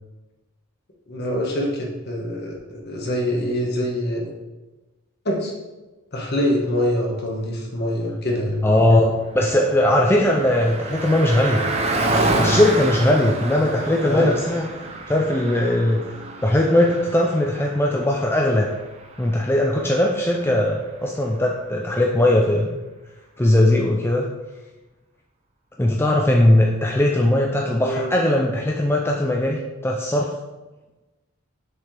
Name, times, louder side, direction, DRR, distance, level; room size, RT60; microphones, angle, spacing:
voice 1, 1.1-4.3 5.2-5.5 6.1-8.6 14.0-14.3 27.8-28.1, equal, 45° left, -1 dB, 1.6 m, -25 dB
voice 2, 8.6-11.7 12.4-14.7 15.1-16.0 16.4-18.7 19.2-22.8 23.4-24.3 25.8-30.3, left 1 dB, 10° left, 0 dB, 0.5 m, -19 dB
Car passing by, 9.1-20.9, right 2 dB, 30° right, 0.8 m, -28 dB
7.3 x 6.7 x 3.4 m, 1.1 s
head